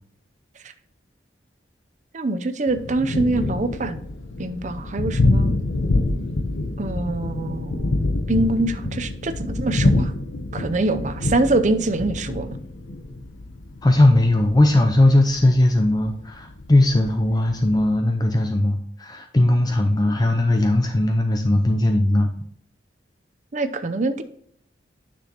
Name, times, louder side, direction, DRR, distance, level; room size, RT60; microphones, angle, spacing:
voice 1, 2.1-4.0 4.4-5.5 6.8-10.1 10.5-12.6 23.5-24.2, right 2 dB, 40° right, 10 dB, 0.5 m, -24 dB
Thunder, 2.7-18.0, left 2 dB, 90° left, 0.9 m, -26 dB
voice 2, 13.8-22.3, left 1 dB, 20° left, 5 dB, 0.5 m, -18 dB
10.0 x 6.1 x 2.9 m, 0.66 s
head